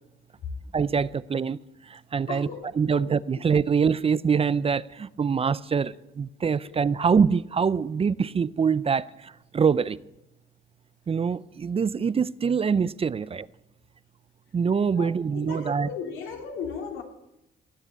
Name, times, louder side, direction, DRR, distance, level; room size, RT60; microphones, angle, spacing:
voice 1, 0.7-1.6 1.9-2.5 2.8-10.0 11.1-13.5 14.5-15.9, right 6 dB, 30° right, 0.4 m, -24 dB
voice 2, 2.3-3.2 6.6-7.1 15.0-17.0, left 6 dB, 90° left, 2.4 m, -37 dB
18.0 x 7.9 x 8.3 m
cardioid pair, 90°, 20 cm